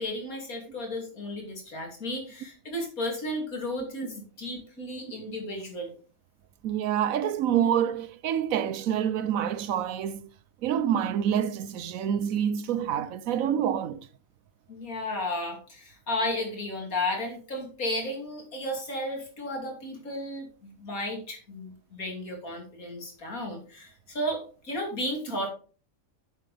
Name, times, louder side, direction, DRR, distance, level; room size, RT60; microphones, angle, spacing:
voice 1, 0.0-5.9 14.7-25.5, left 1 dB, 85° left, 3.3 m, -33 dB
voice 2, 6.6-10.2 10.6-14.1, right 9 dB, 75° right, 1.1 m, -27 dB
9.7 x 7.7 x 3.4 m
omnidirectional pair, 1.5 m